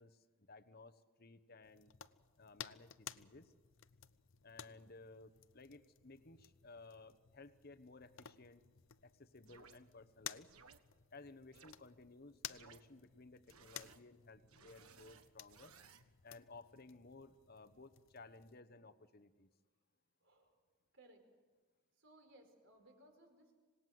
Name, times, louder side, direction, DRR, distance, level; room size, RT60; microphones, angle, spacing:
voice 1, 0.0-1.9 2.4-3.5 4.4-8.6 9.0-10.5 11.1-15.7 16.2-19.5, left 3 dB, 45° left, 11 dB, 1.1 m, -58 dB
sound 1, 1.6-18.6, left 10 dB, 60° left, 0.7 m, -56 dB
sound 2, 9.5-9.8 10.5-10.8 11.5-11.7 12.5-12.8 13.5-14.0 14.5-16.0, right 6 dB, 85° right, 1.5 m, -61 dB
voice 2, 20.2-20.6 20.9-21.2 21.9-23.6, right 1 dB, 60° right, 4 dB, 4.8 m, -64 dB
26.5 x 19.5 x 7.8 m, 1.5 s
head